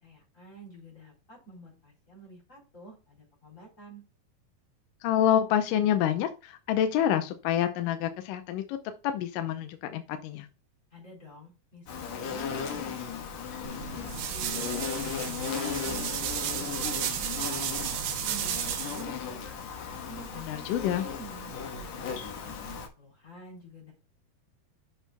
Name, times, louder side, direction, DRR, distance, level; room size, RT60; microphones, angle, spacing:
voice 1, 0.0-4.0 10.9-14.6 15.0-16.1 16.4-19.6 20.1-23.9, right 1 dB, 20° left, -3 dB, 3.9 m, -49 dB
voice 2, 5.0-8.8 9.0-10.5 20.4-21.0, left 10 dB, 80° left, 7 dB, 2.0 m, -27 dB
Insect, 11.9-22.9, left 6 dB, 60° left, 2.1 m, -36 dB
sound 1, 13.6-19.0, right 10 dB, 80° right, 2.8 m, -33 dB
8.1 x 6.1 x 2.2 m, 0.31 s
omnidirectional pair, 4.3 m